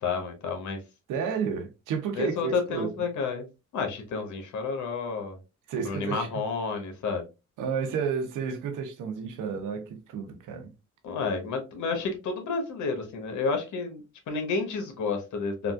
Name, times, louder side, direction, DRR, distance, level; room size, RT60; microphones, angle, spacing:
voice 1, 0.0-0.8 2.1-3.4 3.7-5.4 5.7-7.2 11.0-15.7, left 4 dB, 75° left, 1.1 m, -30 dB
voice 2, 1.1-2.9 5.7-6.4 7.6-10.7, right 6 dB, 85° right, 0.8 m, -31 dB
3.6 x 2.4 x 2.3 m
cardioid pair, 90°, 30 cm